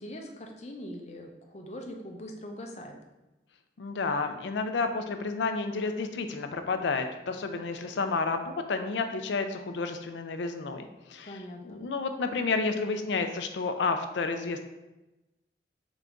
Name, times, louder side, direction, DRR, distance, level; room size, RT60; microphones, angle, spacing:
voice 1, 0.0-3.0 11.2-11.8, equal, 40° left, 2 dB, 0.5 m, -42 dB
voice 2, 3.8-11.4 11.6-14.6, left 4 dB, 90° left, 7 dB, 0.4 m, -31 dB
4.0 x 3.7 x 3.4 m, 1.0 s
head